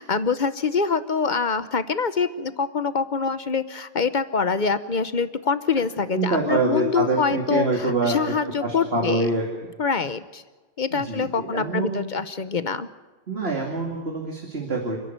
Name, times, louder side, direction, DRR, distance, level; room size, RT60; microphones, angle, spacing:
voice 1, 0.0-9.3 9.8-10.4 10.8-12.9, left 5 dB, 45° left, 13 dB, 0.9 m, -25 dB
voice 2, 6.1-8.3 8.6-9.5 10.9-12.0 13.3-15.0, right 2 dB, 55° right, 0 dB, 2.8 m, -25 dB
28.5 x 11.0 x 9.3 m, 1.3 s
omnidirectional pair, 1.2 m